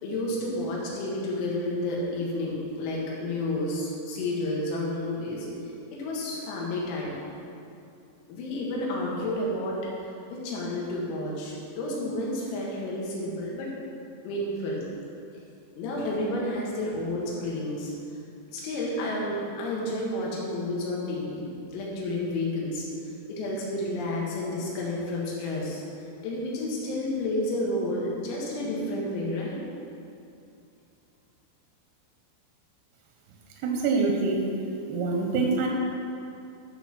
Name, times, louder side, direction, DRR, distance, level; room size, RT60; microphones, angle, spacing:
voice 1, 0.0-5.5 5.9-7.2 8.3-9.8 10.3-13.7 14.2-14.8 15.8-17.9 18.5-22.9 23.3-25.8 26.2-29.6, left 1 dB, 85° left, -4 dB, 4.4 m, -30 dB
voice 2, 33.6-34.5 34.9-35.7, right 3 dB, 80° right, 0 dB, 2.5 m, -25 dB
12.5 x 4.5 x 6.0 m, 2.6 s
omnidirectional pair, 5.9 m